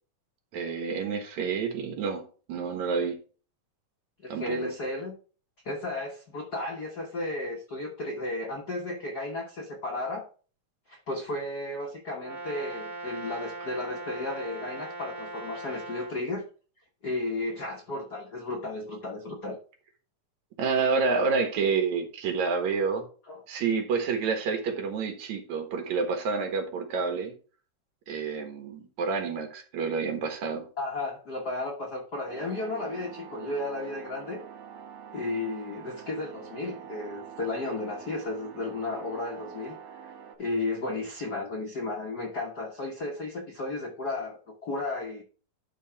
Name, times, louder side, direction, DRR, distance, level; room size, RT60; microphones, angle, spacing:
voice 1, 0.5-2.2 2.5-3.2 4.3-4.7 20.6-23.0 23.5-27.3 28.1-30.7, right 5 dB, 65° right, 2.5 m, -28 dB
voice 2, 4.2-5.1 5.6-10.3 10.9-16.5 17.0-19.6 23.3-23.4 30.8-34.4 35.1-40.1 40.4-45.2, left 2 dB, 80° left, 0.8 m, -34 dB
Brass instrument, 12.2-16.2, right 2 dB, 15° right, 0.6 m, -40 dB
sound 1, 32.3-40.4, right 8 dB, 80° right, 2.9 m, -45 dB
11.0 x 3.7 x 5.6 m
omnidirectional pair, 3.8 m